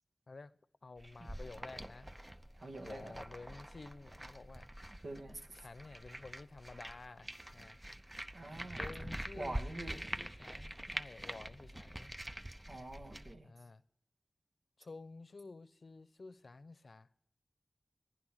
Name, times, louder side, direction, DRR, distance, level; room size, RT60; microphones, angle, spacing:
voice 1, 0.8-2.1 2.8-4.7 5.6-7.8 8.7-12.1 13.4-13.8 14.8-17.3, left 3 dB, 70° left, 0.7 m, -52 dB
sound 1, 1.0-13.3, right 1 dB, 15° right, 0.7 m, -46 dB
voice 2, 2.6-3.2 5.0-5.5 8.3-8.9 9.3-10.0 12.7-13.5, right 2 dB, 85° right, 2.1 m, -45 dB
15.5 x 10.5 x 6.3 m
wide cardioid pair, 75°, 0 cm